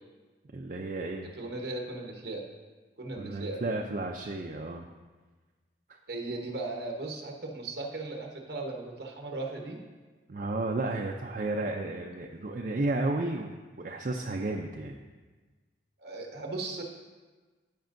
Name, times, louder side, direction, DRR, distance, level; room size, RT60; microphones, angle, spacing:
voice 1, 0.5-1.3 3.2-4.8 10.3-13.5 13.8-15.0, right 2 dB, 45° right, 1 dB, 0.4 m, -32 dB
voice 2, 1.4-2.4 3.0-3.6 6.1-9.8 16.0-16.8, right 2 dB, 60° right, 1 dB, 1.1 m, -37 dB
14.5 x 5.2 x 2.6 m, 1.4 s
head